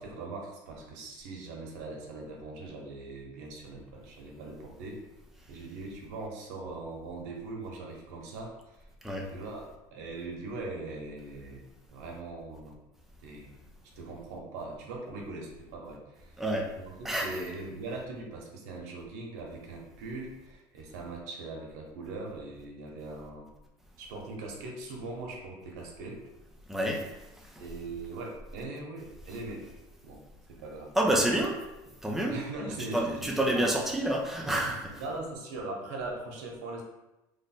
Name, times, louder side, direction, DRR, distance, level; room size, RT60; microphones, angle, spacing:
voice 1, 0.0-5.0 5.5-8.8 9.3-12.8 13.2-13.5 13.9-16.4 16.8-23.5 24.0-26.2 27.6-29.7 30.0-30.2 30.5-30.9 32.3-33.7 35.0-36.8, right 2 dB, 85° right, 0 dB, 0.8 m, -41 dB
voice 2, 16.4-16.7 17.0-17.3 26.7-27.0 31.0-31.6 32.0-32.4 32.9-35.0, right 1 dB, 5° right, -1 dB, 0.5 m, -28 dB
3.2 x 2.1 x 4.1 m, 0.96 s
cardioid pair, 150°, 9 cm